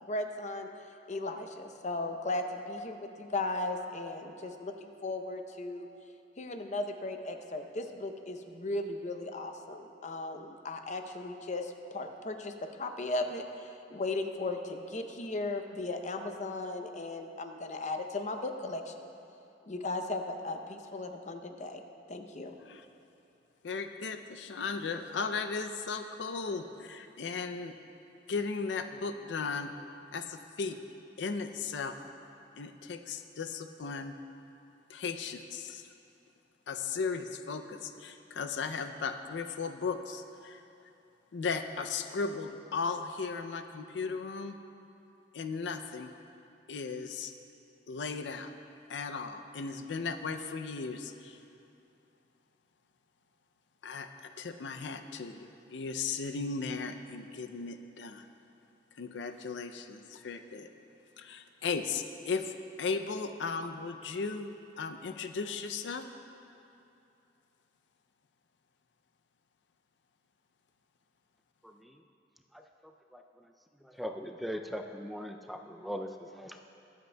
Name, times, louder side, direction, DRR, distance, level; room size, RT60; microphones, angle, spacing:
voice 1, 0.1-0.7 1.1-5.9 6.4-19.1 19.7-21.8 22.1-22.5, left 2 dB, 40° left, 6 dB, 0.6 m, -36 dB
voice 2, 23.6-27.7 28.3-29.7 30.1-30.8 31.2-31.9 32.6-34.2 34.9-35.9 36.7-40.6 41.3-44.6 45.3-46.1 46.7-47.3 47.9-48.5 48.9-51.4 53.8-58.3 59.0-60.7 61.2-66.1, left 4 dB, 85° left, 7 dB, 0.5 m, -36 dB
voice 3, 71.6-72.0 72.5-73.5 73.8-76.6, equal, ahead, 4 dB, 0.3 m, -41 dB
22.5 x 7.9 x 2.2 m, 2.7 s
head